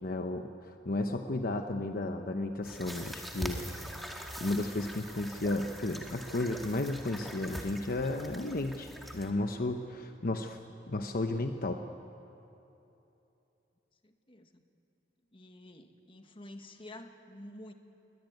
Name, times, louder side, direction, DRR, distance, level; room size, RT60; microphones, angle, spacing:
voice 1, 0.0-3.6 4.0-10.6 10.9-11.8, left 2 dB, 50° left, 6 dB, 0.9 m, -33 dB
sound 1, 2.6-9.3, equal, ahead, 2.0 m, -43 dB
voice 2, 14.0-14.6 15.3-17.7, left 1 dB, 30° left, 6 dB, 1.5 m, -49 dB
22.5 x 21.0 x 9.3 m, 2.9 s
head